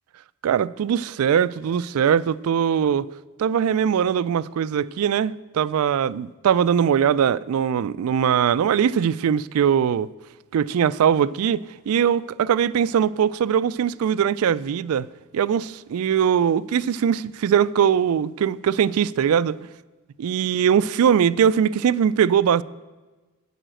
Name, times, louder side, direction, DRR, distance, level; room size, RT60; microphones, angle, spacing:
voice 1, 0.4-3.1 3.4-10.1 10.5-15.1 15.3-19.6 20.2-22.6, right 8 dB, 80° right, 0.3 m, -21 dB
11.0 x 5.0 x 7.7 m
head